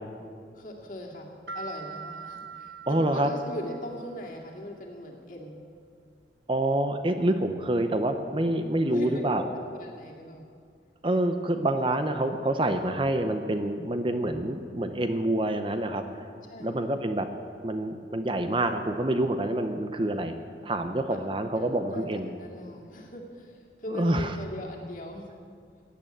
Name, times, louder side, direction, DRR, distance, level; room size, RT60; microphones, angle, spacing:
voice 1, 0.5-5.6 8.9-10.5 16.5-16.8 21.6-25.3, left 1 dB, 45° left, -1 dB, 2.3 m, -40 dB
sound 1, 1.5-4.1, right 5 dB, 75° right, 1.4 m, -42 dB
voice 2, 2.9-3.3 6.5-9.4 11.0-16.0 16.6-17.3 17.6-20.4 20.6-22.3 23.9-24.4, right 1 dB, 30° right, 7 dB, 0.7 m, -27 dB
15.5 x 9.0 x 8.6 m, 2.2 s
head